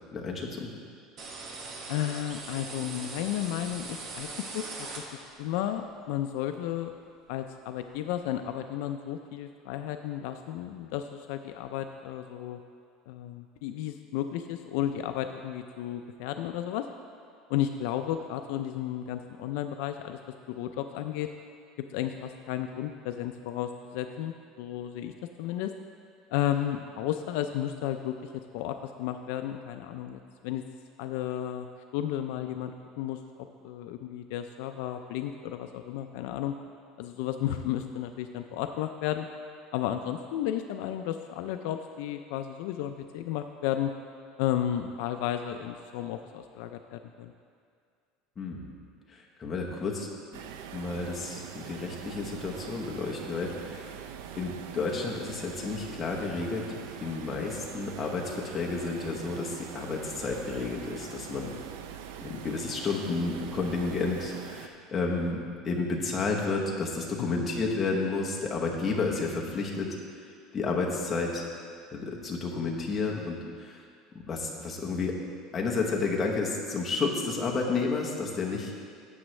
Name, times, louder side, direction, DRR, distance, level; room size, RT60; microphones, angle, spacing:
voice 1, 0.1-0.7 48.4-48.6 49.1-50.1 50.7-54.0 54.4-61.5 62.2-69.9 70.5-71.4 71.9-73.8 74.3-75.2 75.5-78.7, left 3 dB, 15° left, -2 dB, 1.0 m, -31 dB
sound 1, 1.2-5.5, right 3 dB, 35° right, 0.9 m, -41 dB
voice 2, 1.9-4.3 4.5-6.9 7.3-12.6 13.1-16.9 17.5-20.2 20.5-21.3 21.9-25.1 25.4-25.7 26.3-30.6 31.0-33.2 33.6-36.5 37.0-39.3 39.7-43.9 44.4-47.3 67.2-67.5 78.5-78.7, left 11 dB, 65° left, 7 dB, 0.4 m, -33 dB
sound 2, 50.3-64.7, right 8 dB, 90° right, 0.5 m, -43 dB
12.0 x 7.8 x 3.2 m, 2.2 s
cardioid pair, 175°, 0 cm